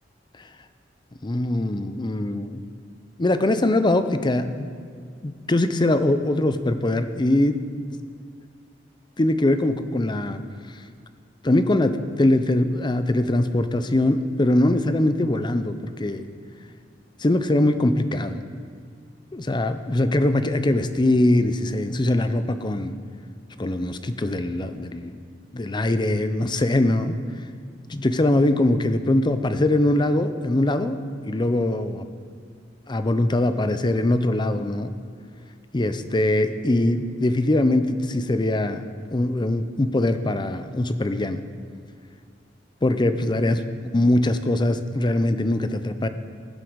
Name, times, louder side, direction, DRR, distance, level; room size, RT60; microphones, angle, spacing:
voice 1, 1.2-2.6 3.2-4.7 5.2-7.6 9.2-10.4 11.4-16.2 17.2-18.4 19.3-22.9 23.6-25.1 25.5-27.2 27.9-31.0 31.2-32.1 32.9-34.9 35.7-41.4 42.8-43.6 43.9-46.1, left 1 dB, 25° left, 10 dB, 0.6 m, -22 dB
19.5 x 7.6 x 4.7 m, 2.2 s
head